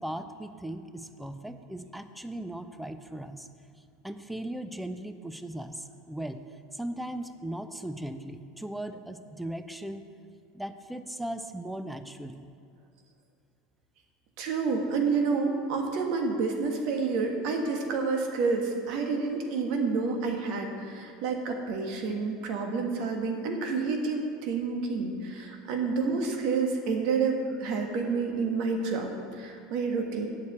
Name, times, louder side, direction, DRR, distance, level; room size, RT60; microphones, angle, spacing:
voice 1, 0.0-3.5 4.0-6.4 6.7-10.0 10.5-12.5, right 1 dB, 5° right, 9 dB, 0.7 m, -38 dB
voice 2, 14.4-30.3, right 4 dB, 55° right, 3 dB, 1.6 m, -29 dB
8.2 x 6.8 x 8.1 m, 2.5 s
figure-of-eight pair, 75°, 0 cm